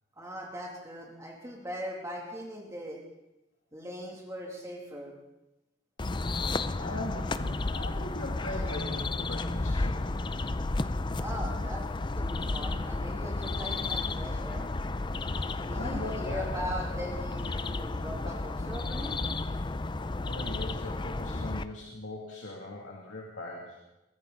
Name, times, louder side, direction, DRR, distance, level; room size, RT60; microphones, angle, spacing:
voice 1, 0.2-3.0 3.7-5.1 11.2-11.9 12.2-14.7 15.7-19.2, equal, 15° right, -1 dB, 2.6 m, -40 dB
sound 1, 6.0-21.6, left 2 dB, 25° left, 0.5 m, -32 dB
voice 2, 6.7-10.1 15.4-16.4 20.3-23.8, left 1 dB, 80° left, -2 dB, 2.5 m, -40 dB
23.0 x 15.0 x 3.9 m, 0.95 s
head